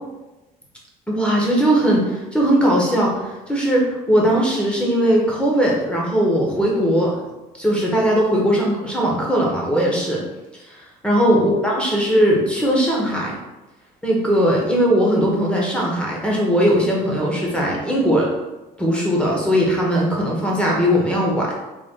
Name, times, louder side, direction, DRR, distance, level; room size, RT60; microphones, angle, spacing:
voice 1, 1.1-7.2 7.6-10.2 10.7-13.4 14.0-18.3 18.8-21.5, equal, 5° left, -3 dB, 1.1 m, -19 dB
3.9 x 2.5 x 3.7 m, 1.1 s
cardioid pair, 110°, 17 cm